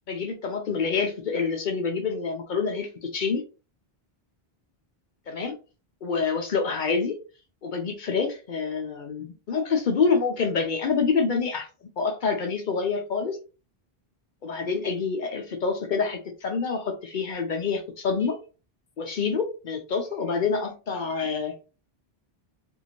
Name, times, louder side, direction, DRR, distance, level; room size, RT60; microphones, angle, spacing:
voice 1, 0.1-3.4 5.3-5.5 6.0-7.2 7.6-11.7 12.0-13.4 14.4-18.4 19.0-21.5, left 5 dB, 60° left, 5 dB, 0.6 m, -27 dB
2.7 x 2.5 x 2.8 m, 0.34 s
omnidirectional pair, 1.0 m